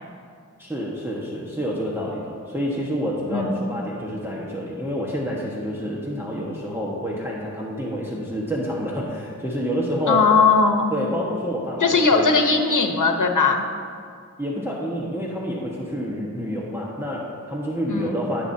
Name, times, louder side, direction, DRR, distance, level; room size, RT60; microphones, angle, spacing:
voice 1, 0.6-10.2 10.9-12.3 14.4-18.5, equal, 5° right, -5 dB, 1.5 m, -28 dB
voice 2, 10.1-10.9 11.8-13.6 17.9-18.1, left 4 dB, 75° left, 4 dB, 1.1 m, -19 dB
20.0 x 7.1 x 2.9 m, 2.2 s
wide cardioid pair, 50°, 31 cm